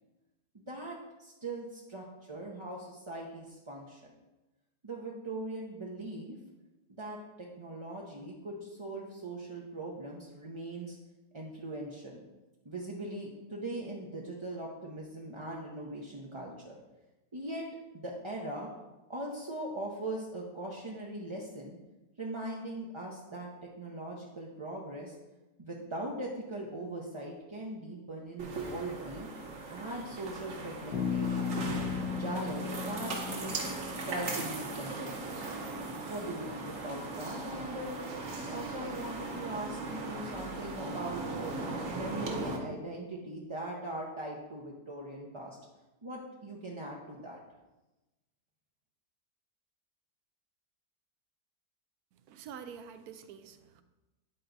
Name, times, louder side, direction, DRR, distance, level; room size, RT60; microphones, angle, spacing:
voice 1, 0.5-4.0 4.8-6.4 6.9-11.0 11.3-12.2 12.6-16.8 17.3-17.7 17.9-18.7 19.1-21.8 22.2-25.1 25.6-29.3 29.7-31.6 32.2-35.5 36.1-38.1 38.5-41.6 41.9-45.6 46.0-47.4, right 1 dB, 30° right, -3 dB, 0.5 m, -40 dB
sound 1, 28.4-42.6, right 3 dB, 55° right, 1.4 m, -38 dB
Bass guitar, 30.9-34.6, left 7 dB, 85° left, 1.5 m, -36 dB
voice 2, 52.3-53.8, right 7 dB, 75° right, 10 dB, 1.1 m, -47 dB
9.7 x 4.5 x 3.9 m, 1.0 s
omnidirectional pair, 1.7 m